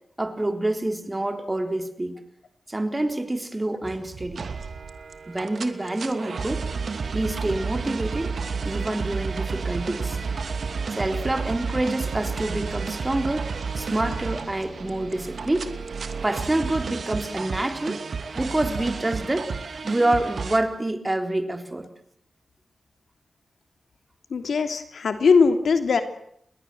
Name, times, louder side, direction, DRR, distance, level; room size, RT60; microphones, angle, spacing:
voice 1, 0.2-2.2 2.7-4.5 5.3-6.6 7.1-8.3 8.6-10.2 10.9-13.5 13.8-15.7 16.2-18.0 18.3-19.5 19.8-21.9, right 1 dB, 20° right, 7 dB, 3.8 m, -27 dB
sound 1, 3.8-20.6, right 5 dB, 70° right, 2.7 m, -31 dB
voice 2, 24.3-26.0, left 5 dB, 80° left, 8 dB, 3.0 m, -20 dB
29.5 x 21.5 x 7.8 m, 0.72 s
wide cardioid pair, 100°, 0 cm